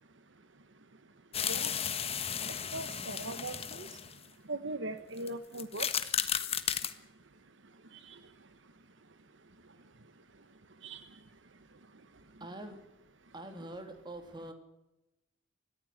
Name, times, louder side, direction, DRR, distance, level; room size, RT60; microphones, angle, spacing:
sound 1, 1.3-4.3 5.2-5.3 5.5-6.9, left 8 dB, 30° left, 1.4 m, -34 dB
voice 1, 2.7-3.9 4.5-5.9 7.9-8.2 10.8-11.1, right 2 dB, 65° right, 11 dB, 1.2 m, -40 dB
voice 2, 11.9-12.8 13.3-14.5, right 1 dB, 25° right, 6 dB, 3.2 m, -45 dB
21.5 x 14.5 x 9.4 m, 0.92 s
head